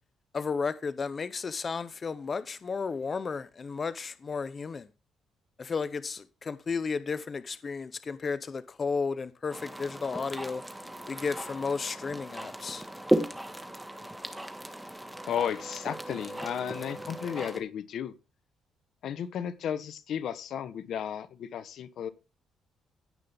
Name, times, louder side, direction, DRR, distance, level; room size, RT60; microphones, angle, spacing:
voice 1, 0.3-4.9 5.6-10.6 11.1-12.8, left 5 dB, 40° left, 0.8 m, -33 dB
sound 1, 9.5-17.6, right 1 dB, 5° right, 1.5 m, -35 dB
voice 2, 15.2-18.1 19.0-22.1, left 9 dB, 70° left, 1.1 m, -34 dB
16.5 x 5.8 x 3.6 m
cardioid pair, 90°, 0 cm